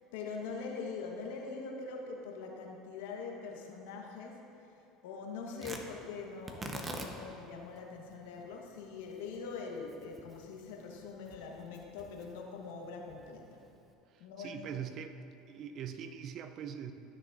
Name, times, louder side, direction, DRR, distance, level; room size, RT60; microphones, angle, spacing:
voice 1, 0.1-4.5 5.0-13.4 14.2-14.5, left 4 dB, 75° left, 0 dB, 1.3 m, -43 dB
Tearing, 5.6-13.9, right 1 dB, 25° right, 1.0 m, -48 dB
voice 2, 14.1-15.2 15.5-16.9, right 8 dB, 50° right, 9 dB, 0.6 m, -42 dB
14.0 x 6.4 x 2.6 m, 2.8 s
hypercardioid pair, 80°, 0 cm